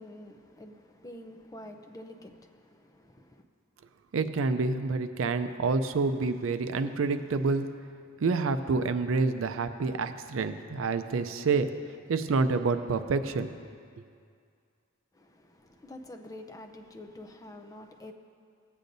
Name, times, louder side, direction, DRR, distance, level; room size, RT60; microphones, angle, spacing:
voice 1, 0.0-3.4 15.1-18.1, left 1 dB, 20° left, 4 dB, 0.5 m, -47 dB
voice 2, 4.1-7.7 8.2-11.7 12.1-13.5, right 4 dB, 75° right, 10 dB, 0.5 m, -28 dB
17.0 x 8.3 x 2.6 m, 2.3 s
head